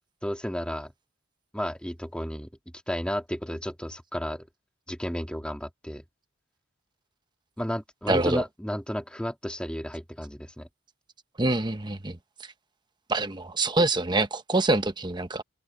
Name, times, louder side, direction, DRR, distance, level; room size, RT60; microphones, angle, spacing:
voice 1, 0.2-0.9 1.5-2.5 2.9-4.5 4.9-6.0 7.6-10.7, equal, 5° left, 2.0 m, -32 dB
voice 2, 8.1-8.4 11.4-12.2 13.1-15.4, right 2 dB, 20° right, 1.0 m, -25 dB
open air
head